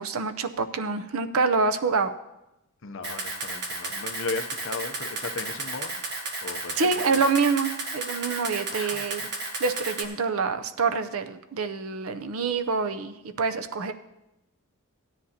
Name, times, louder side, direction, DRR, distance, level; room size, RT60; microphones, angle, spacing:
voice 1, 0.0-2.1 6.8-9.2 9.6-13.9, right 4 dB, 70° right, 8 dB, 0.6 m, -26 dB
voice 2, 2.8-6.0 6.4-6.9 8.7-9.1, left 4 dB, 60° left, 6 dB, 0.7 m, -36 dB
Camera, 3.0-10.0, right 2 dB, 50° right, 1.4 m, -33 dB
16.5 x 10.0 x 2.8 m, 0.92 s
head